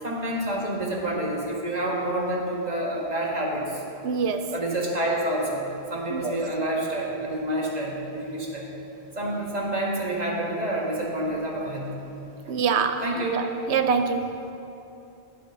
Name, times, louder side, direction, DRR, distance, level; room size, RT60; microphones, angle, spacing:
voice 1, 0.0-3.8 4.5-8.7 9.1-11.9 12.4-12.5 13.0-13.4, right 1 dB, 40° right, -3 dB, 1.6 m, -28 dB
voice 2, 4.0-4.5 6.1-6.4 12.5-13.4 13.7-14.3, right 6 dB, 80° right, 8 dB, 0.9 m, -25 dB
8.4 x 7.7 x 5.9 m, 2.9 s
omnidirectional pair, 1.1 m